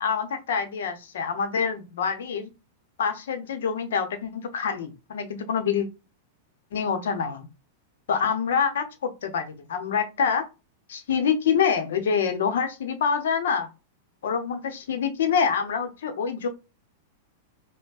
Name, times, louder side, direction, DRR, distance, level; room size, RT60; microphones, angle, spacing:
voice 1, 0.0-2.5 3.0-5.9 6.7-7.5 8.1-10.4 10.9-13.7 14.2-16.5, left 6 dB, 65° left, 7 dB, 0.8 m, -26 dB
5.1 x 2.1 x 2.4 m, 0.28 s
figure-of-eight pair, 95°, 0 cm